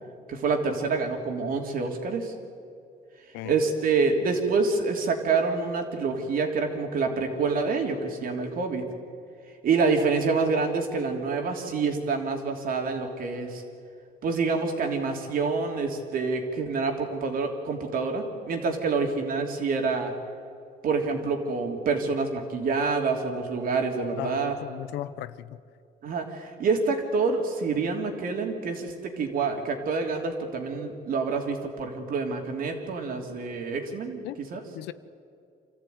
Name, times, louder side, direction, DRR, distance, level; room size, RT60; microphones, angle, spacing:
voice 1, 0.3-2.3 3.4-8.8 9.6-13.6 14.2-20.1 20.8-24.5 26.0-34.2 34.5-34.6, right 4 dB, 60° right, 3.2 m, -27 dB
voice 2, 24.2-25.6 34.2-34.4 34.7-34.9, left 14 dB, 85° left, 0.7 m, -36 dB
26.5 x 14.0 x 9.4 m
cardioid pair, 110°, 17 cm